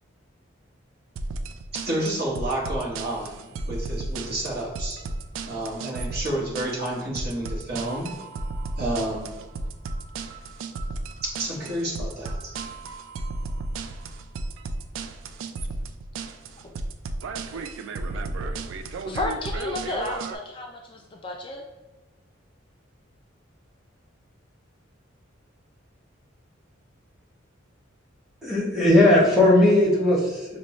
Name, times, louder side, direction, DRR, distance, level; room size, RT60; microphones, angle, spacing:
sound 1, 1.2-20.4, right 3 dB, 80° right, 0.3 m, -33 dB
voice 1, 1.7-5.0 5.4-8.2 8.8-9.3 11.2-12.4, right 1 dB, 50° right, -4 dB, 1.2 m, -30 dB
voice 2, 19.1-21.6, left 2 dB, 25° left, 1 dB, 0.3 m, -32 dB
voice 3, 28.4-30.6, left 1 dB, ahead, -7 dB, 1.0 m, -18 dB
5.3 x 2.2 x 3.1 m, 1.2 s
head